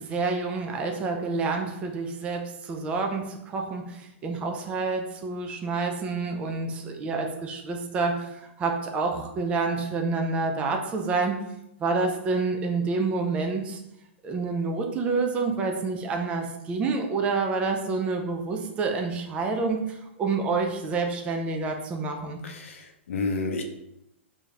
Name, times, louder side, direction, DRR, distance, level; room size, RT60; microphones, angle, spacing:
voice 1, 0.0-11.4 11.8-13.8 14.2-22.4, right 4 dB, 15° right, 3 dB, 0.4 m, -28 dB
voice 2, 22.4-23.6, left 3 dB, 80° left, 4 dB, 0.5 m, -30 dB
4.9 x 2.7 x 2.4 m, 0.84 s
hypercardioid pair, 145°, 7 cm